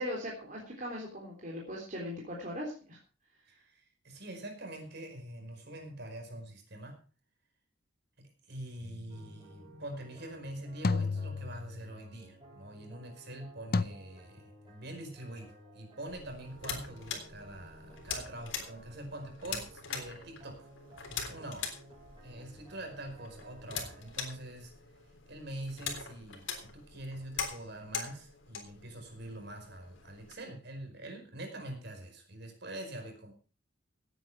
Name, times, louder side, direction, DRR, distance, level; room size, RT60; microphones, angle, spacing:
voice 1, 0.0-3.0, equal, 45° right, -2 dB, 3.6 m, -39 dB
voice 2, 3.5-7.0 8.2-20.7 21.3-21.7 22.2-24.7 25.3-33.3, right 1 dB, 60° right, 4 dB, 5.0 m, -44 dB
sound 1, 8.8-9.2 10.8-12.1 13.7-13.8, left 3 dB, 50° left, 0.7 m, -32 dB
sound 2, 9.1-24.2, right 1 dB, 25° right, 7.1 m, -56 dB
sound 3, 16.1-30.3, left 6 dB, 85° left, 3.6 m, -43 dB
17.5 x 9.2 x 4.8 m, 0.37 s
head